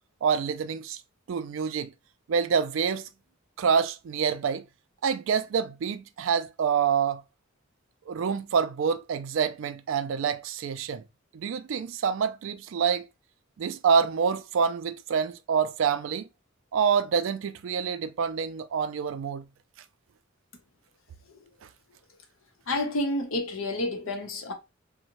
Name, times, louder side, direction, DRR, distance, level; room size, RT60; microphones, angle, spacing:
voice 1, 0.2-1.0 1.3-1.9 2.3-3.1 3.6-4.6 5.0-7.2 8.1-11.0 11.3-13.0 13.6-16.3 16.7-19.4, right 6 dB, 70° right, 0.3 m, -27 dB
voice 2, 22.7-24.5, left 1 dB, 80° left, 0.7 m, -29 dB
2.6 x 2.1 x 2.9 m
head